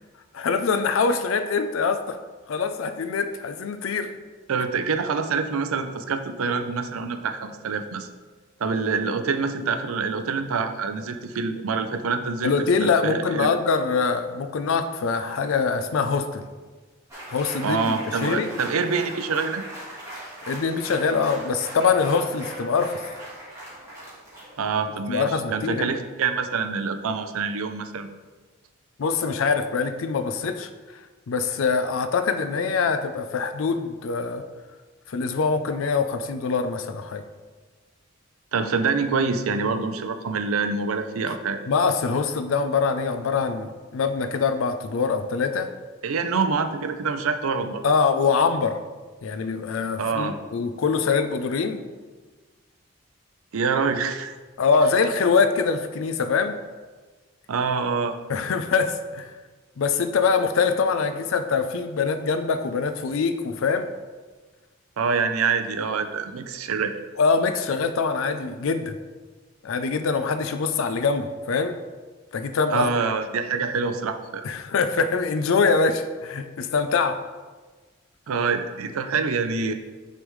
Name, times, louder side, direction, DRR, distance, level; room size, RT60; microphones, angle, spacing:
voice 1, 0.3-2.2 2.5-4.1 12.4-16.4 17.3-18.5 20.5-23.0 25.1-25.8 29.0-30.7 31.3-34.4 35.1-37.2 41.7-45.7 47.8-48.8 49.2-51.8 54.6-56.5 58.3-59.3 59.8-63.9 67.2-69.0 69.6-71.8 72.3-72.9 74.4-77.2, left 5 dB, 70° left, 9 dB, 0.4 m, -24 dB
voice 2, 4.5-8.1 8.6-12.5 12.8-13.5 17.6-19.6 24.6-28.1 38.5-41.6 46.0-47.8 50.0-50.4 53.5-54.3 57.5-58.1 65.0-66.9 72.7-74.4 78.3-79.7, right 5 dB, 85° right, 8 dB, 0.5 m, -26 dB
sound 1, 17.1-24.7, right 1 dB, 15° right, 1.5 m, -39 dB
9.4 x 3.4 x 3.2 m, 1.4 s
head